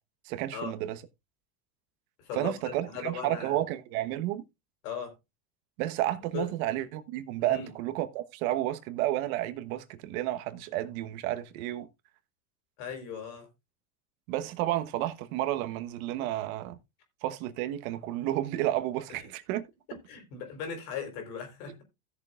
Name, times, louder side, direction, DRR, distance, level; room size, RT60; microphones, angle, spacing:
voice 1, 0.2-1.0 2.4-4.4 5.8-11.9 14.3-16.8 17.2-19.7, right 14 dB, 65° right, 1.3 m, -31 dB
voice 2, 2.2-3.6 4.8-5.1 6.3-6.5 7.4-7.7 12.8-13.5 19.1-19.3 19.9-21.8, left 6 dB, 65° left, 4.2 m, -38 dB
16.5 x 6.9 x 2.4 m
supercardioid pair, 110°, 46 cm